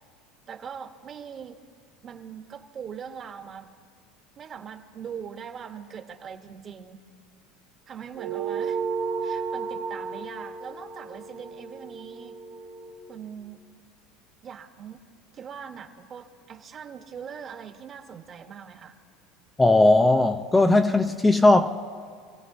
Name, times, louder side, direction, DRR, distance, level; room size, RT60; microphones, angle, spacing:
voice 1, 0.5-1.6 2.0-3.7 4.4-7.0 7.9-8.8 9.2-12.4 13.1-13.6 14.4-15.0 15.3-19.0, right 7 dB, 35° right, 6 dB, 1.2 m, -41 dB
sound 1, 8.1-13.0, right 5 dB, 70° right, 2.7 m, -33 dB
voice 2, 19.6-21.7, left 2 dB, 10° left, 5 dB, 0.5 m, -18 dB
26.5 x 16.0 x 2.7 m, 2.1 s
supercardioid pair, 120°, 0 cm